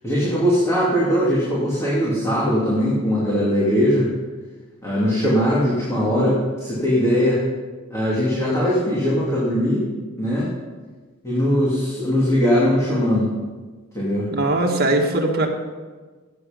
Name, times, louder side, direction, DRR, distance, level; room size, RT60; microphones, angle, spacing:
voice 1, 0.0-4.1 4.8-7.4 7.9-9.8 10.2-10.5 11.2-13.3 13.9-14.3, equal, 15° left, -7 dB, 2.6 m, -20 dB
voice 2, 14.3-15.5, right 2 dB, 50° right, 1 dB, 1.8 m, -20 dB
16.0 x 8.4 x 5.2 m, 1.4 s
head